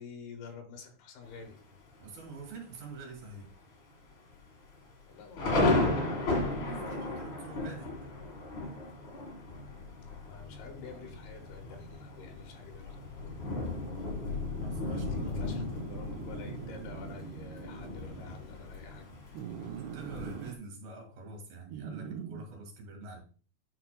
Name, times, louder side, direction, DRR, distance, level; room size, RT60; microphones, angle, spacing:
voice 1, 0.0-1.6 5.1-5.9 7.8-7.9 10.2-13.4 14.8-19.1, left 5 dB, 75° left, 4 dB, 2.9 m, -49 dB
Thunder, 1.2-1.8 2.3-2.4 2.7-3.1 3.5-3.6 4.3-20.5, left 2 dB, 45° left, 1.6 m, -35 dB
voice 2, 2.0-3.5 6.6-7.9 14.6-15.6 19.7-23.2, right 3 dB, 65° right, 2 dB, 3.7 m, -46 dB
sound 1, 14.8-18.4 19.3-20.6 21.7-22.5, right 9 dB, 85° right, 2.7 m, -43 dB
9.8 x 5.7 x 2.2 m, 0.39 s
omnidirectional pair, 4.8 m